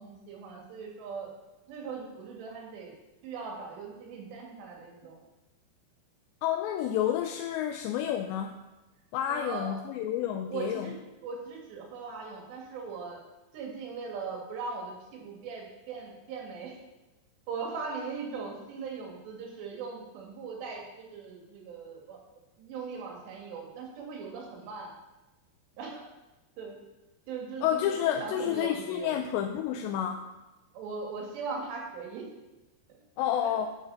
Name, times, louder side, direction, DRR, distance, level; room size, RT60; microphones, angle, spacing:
voice 1, 0.0-1.3 1.7-2.9 3.2-5.2 9.3-9.8 10.5-10.9 11.2-13.2 13.5-16.8 17.5-22.2 22.6-24.9 25.8-26.1 26.6-26.8 27.3-29.2 30.7-32.3 33.4-33.5, right 5 dB, 80° right, 0 dB, 4.1 m, -39 dB
voice 2, 6.4-8.5 9.1-10.9 27.6-30.3 33.2-33.7, left 10 dB, 90° left, 4 dB, 2.9 m, -30 dB
9.0 x 8.0 x 5.4 m, 1.0 s
omnidirectional pair, 4.9 m